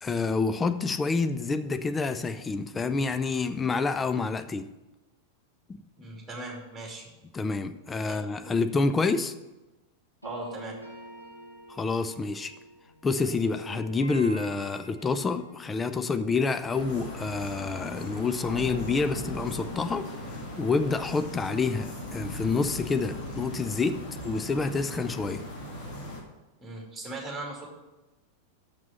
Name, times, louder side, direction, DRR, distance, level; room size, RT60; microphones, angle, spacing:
voice 1, 0.0-4.7 7.3-9.3 11.7-12.5 13.0-20.1 20.6-25.4, left 4 dB, 15° left, 0.5 m, -28 dB
voice 2, 6.0-7.1 8.0-8.2 8.4-8.5 10.2-10.8 26.6-27.7, right 2 dB, 10° right, 2.5 m, -38 dB
sound 1, 10.2-18.3 18.6-23.6, right 1 dB, 90° left, 1.4 m, -48 dB
sound 2, 16.7-26.2, left 1 dB, 50° left, 2.3 m, -39 dB
sound 3, 18.0-24.9, left 3 dB, 65° left, 1.2 m, -43 dB
6.7 x 6.0 x 7.3 m
figure-of-eight pair, 90°, 0 cm